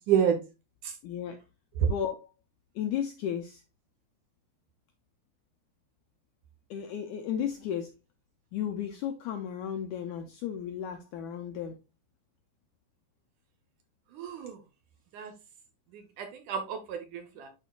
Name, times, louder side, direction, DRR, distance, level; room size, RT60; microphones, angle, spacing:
voice 1, 0.1-0.4 0.8-0.9 14.1-14.6 15.1-15.3 15.9-17.5, right 8 dB, 70° right, 2.1 m, -29 dB
voice 2, 1.0-1.4 1.8-2.3 2.8-3.6 6.7-7.9 8.5-11.8, left 9 dB, 80° left, 1.7 m, -34 dB
11.0 x 4.4 x 2.3 m
omnidirectional pair, 4.2 m